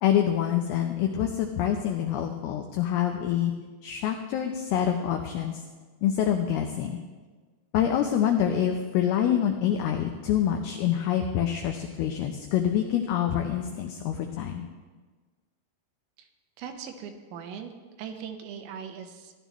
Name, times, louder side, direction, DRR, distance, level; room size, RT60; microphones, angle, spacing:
voice 1, 0.0-3.5 3.8-5.6 6.0-7.0 7.7-14.6, left 10 dB, 85° left, 3 dB, 2.2 m, -26 dB
voice 2, 16.6-17.7 18.0-19.3, right 7 dB, 85° right, 6 dB, 3.1 m, -40 dB
16.0 x 11.0 x 3.0 m, 1.4 s
omnidirectional pair, 5.3 m